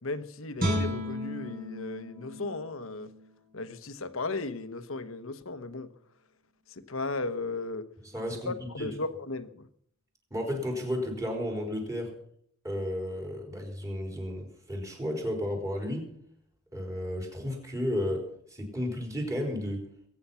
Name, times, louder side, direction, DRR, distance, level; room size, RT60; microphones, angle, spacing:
voice 1, 0.0-3.1 3.5-5.9 6.7-7.9 8.5-9.7, left 3 dB, 70° left, 1.1 m, -36 dB
Guitar, 0.6-3.7 4.1-4.3, equal, 45° right, 5.0 m, -34 dB
voice 2, 8.0-8.9 10.3-12.1 12.6-16.1 16.7-18.2 18.5-19.9, left 1 dB, 15° right, 4.4 m, -33 dB
22.5 x 9.6 x 5.7 m
head